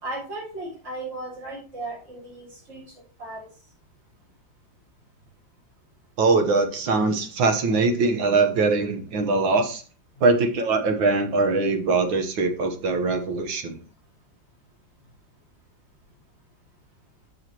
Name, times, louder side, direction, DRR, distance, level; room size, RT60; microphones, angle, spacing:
voice 1, 0.0-2.8 3.2-3.5, right 2 dB, 40° right, -7 dB, 4.1 m, -35 dB
voice 2, 6.2-9.8 10.2-13.8, right 3 dB, 85° right, 6 dB, 2.0 m, -22 dB
14.0 x 4.9 x 3.0 m, 0.38 s
omnidirectional pair, 2.0 m